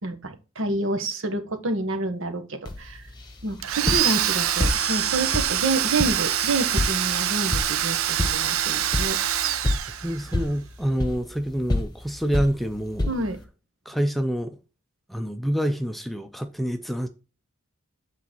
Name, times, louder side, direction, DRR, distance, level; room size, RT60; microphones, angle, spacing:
voice 1, 0.0-3.0 3.4-9.2 13.1-13.4, right 2 dB, 70° right, 1.3 m, -28 dB
sound 1, 2.6-13.4, left 1 dB, 20° left, 1.2 m, -30 dB
Domestic sounds home sounds, 3.6-10.4, right 10 dB, 85° right, 0.7 m, -25 dB
voice 2, 10.0-13.1 13.9-14.6 15.1-17.1, equal, ahead, 0.5 m, -27 dB
8.6 x 4.0 x 4.4 m
head